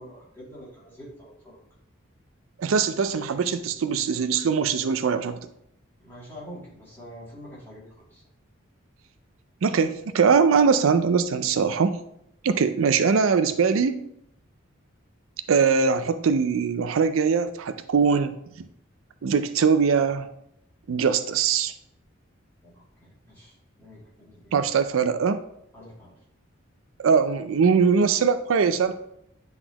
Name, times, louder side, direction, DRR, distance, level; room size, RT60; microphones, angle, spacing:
voice 1, 0.0-1.6 6.0-8.2 22.6-24.6 25.7-26.1, equal, 10° left, -8 dB, 2.5 m, -46 dB
voice 2, 2.6-5.4 9.6-12.0 12.4-14.0 15.5-18.3 19.2-20.3 20.9-21.7 24.5-25.4 27.0-28.9, right 5 dB, 80° right, 10 dB, 0.4 m, -21 dB
9.8 x 4.0 x 2.9 m, 0.76 s
head